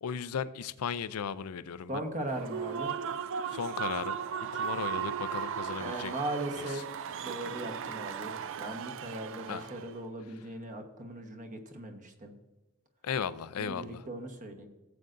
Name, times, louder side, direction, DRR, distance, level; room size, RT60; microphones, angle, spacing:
voice 1, 0.0-2.0 3.5-4.2 4.5-6.1 6.6-6.8 9.5-9.7 13.0-14.0, left 7 dB, 85° left, 16 dB, 0.5 m, -36 dB
voice 2, 1.9-3.0 5.8-6.8 7.2-12.3 13.6-14.7, right 1 dB, 35° right, 4 dB, 1.2 m, -38 dB
Human voice / Cheering / Applause, 2.3-9.9, right 7 dB, 60° right, 0.4 m, -37 dB
16.5 x 7.8 x 2.6 m, 1.1 s
head